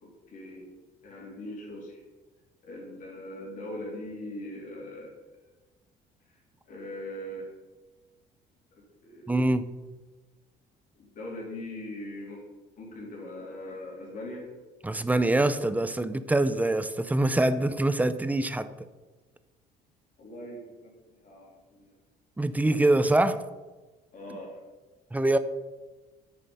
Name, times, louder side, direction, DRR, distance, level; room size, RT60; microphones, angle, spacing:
voice 1, 0.0-0.7 1.0-2.0 2.6-5.1 6.3-6.4 6.7-7.5 9.0-9.3 11.0-12.4 12.8-14.5 20.2-21.9 24.1-24.6, left 1 dB, 50° left, -3 dB, 3.1 m, -41 dB
voice 2, 9.3-9.7 14.8-18.7 22.4-23.4 25.1-25.4, right 2 dB, 10° right, 12 dB, 0.5 m, -24 dB
8.7 x 6.4 x 5.5 m, 1.2 s
cardioid pair, 110°, 17 cm